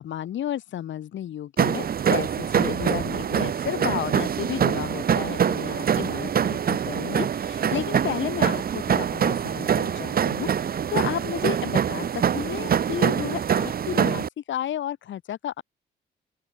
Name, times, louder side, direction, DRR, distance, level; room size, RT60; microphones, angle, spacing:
voice 1, 0.0-15.6, left 11 dB, 70° left, 6.7 m, -32 dB
sound 1, 1.6-14.3, right 8 dB, 50° right, 1.4 m, -24 dB
open air
cardioid pair, 90°, 20 cm